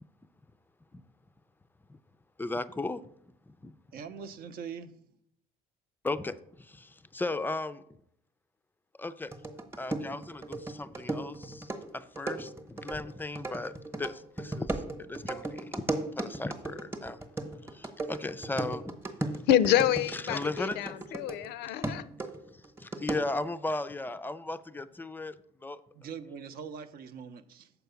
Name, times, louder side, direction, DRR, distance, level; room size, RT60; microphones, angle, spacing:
voice 1, 2.4-3.0 3.5-3.7 6.0-7.8 9.0-9.4 9.8-15.8 16.2-17.2 17.6-18.9 19.2-19.4 20.1-21.0 21.6-21.8 22.5-25.8, left 2 dB, 10° left, 13 dB, 0.3 m, -36 dB
voice 2, 3.9-4.9 25.9-27.7, right 6 dB, 65° right, 10 dB, 0.7 m, -42 dB
sound 1, 9.3-21.5 21.8-23.5, right 2 dB, 15° right, 0.9 m, -36 dB
voice 3, 19.5-22.0, left 11 dB, 80° left, 15 dB, 0.4 m, -27 dB
7.0 x 4.6 x 6.8 m, 0.71 s
cardioid pair, 110°, 17 cm